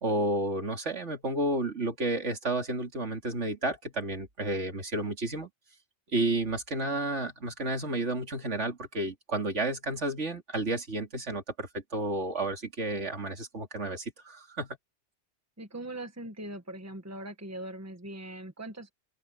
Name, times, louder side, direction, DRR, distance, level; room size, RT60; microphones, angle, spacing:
voice 1, 0.0-5.5 6.1-14.7, right 2 dB, 75° right, 3.0 m, -31 dB
voice 2, 15.6-18.9, right 1 dB, 15° right, 1.6 m, -41 dB
open air
omnidirectional pair, 1.2 m